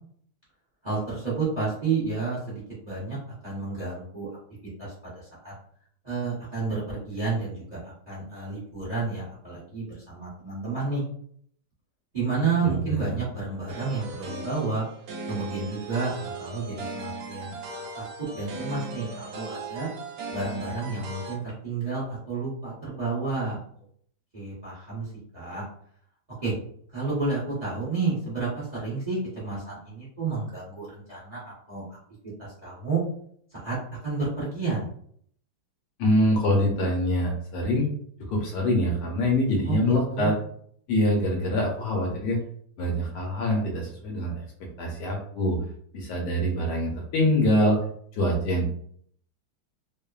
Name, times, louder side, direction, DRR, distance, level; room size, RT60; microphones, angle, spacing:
voice 1, 0.8-3.2 3.4-4.3 4.8-5.5 6.0-11.0 12.1-14.9 15.3-18.0 18.3-19.9 20.3-23.6 24.3-25.1 25.3-25.6 26.4-26.5 26.9-31.8 32.4-33.0 33.6-33.8 34.0-34.9 39.6-40.4, right 4 dB, 35° right, -8 dB, 0.7 m, -30 dB
voice 2, 12.8-13.2 36.0-37.9 38.3-40.3 40.9-42.4 42.8-44.4 44.8-45.6 45.9-47.8 48.1-48.7, left 1 dB, 75° left, 0 dB, 1.1 m, -24 dB
sound 1, 13.7-21.4, right 3 dB, 75° right, 0.8 m, -38 dB
3.1 x 2.1 x 2.3 m, 0.62 s
omnidirectional pair, 2.1 m